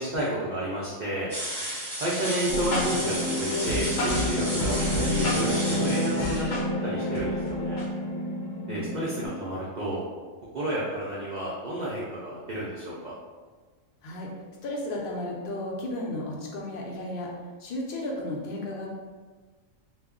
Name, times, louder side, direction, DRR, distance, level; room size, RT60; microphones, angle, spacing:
voice 1, 0.0-1.3 1.9-6.5 6.8-7.9 8.7-10.0 10.5-13.1, right 1 dB, 75° right, -6 dB, 0.4 m, -31 dB
sound 1, 1.3-6.4, equal, 20° right, 0.7 m, -33 dB
sound 2, 2.5-9.3, left 1 dB, 75° left, 1.0 m, -28 dB
voice 2, 14.6-17.3 17.6-18.9, left 1 dB, 60° left, -2 dB, 0.6 m, -33 dB
2.2 x 2.0 x 3.6 m, 1.4 s
omnidirectional pair, 1.4 m